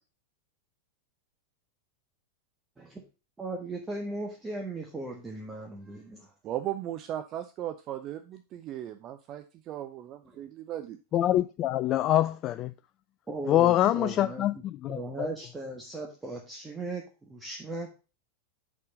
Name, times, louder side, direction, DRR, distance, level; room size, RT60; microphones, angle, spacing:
voice 1, 3.4-6.3 10.3-10.4 13.3-14.6 14.9-17.9, right 2 dB, 10° right, 1.4 m, -38 dB
voice 2, 6.4-11.0, right 12 dB, 35° right, 0.6 m, -37 dB
voice 3, 11.1-12.7 13.5-15.3, left 13 dB, 35° left, 0.3 m, -25 dB
6.6 x 5.5 x 5.2 m
figure-of-eight pair, 90°, 0 cm